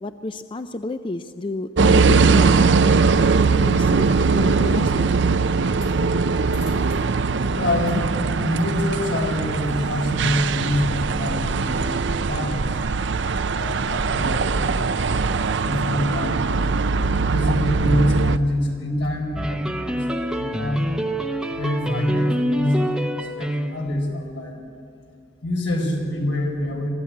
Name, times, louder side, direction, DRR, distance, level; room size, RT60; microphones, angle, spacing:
voice 1, 0.0-3.0 3.5-5.1, left 2 dB, 25° left, 10 dB, 0.4 m, -31 dB
sound 1, 1.8-18.4, right 4 dB, 70° right, 0.6 m, -20 dB
voice 2, 7.5-8.0 8.4-12.7 13.5-15.2 15.6-16.5 17.3-20.8 21.5-24.6 25.4-26.9, left 1 dB, 80° left, 1 dB, 4.4 m, -25 dB
sound 2, 19.4-24.0, equal, 5° right, 0.8 m, -26 dB
23.5 x 14.5 x 8.5 m, 2.4 s
head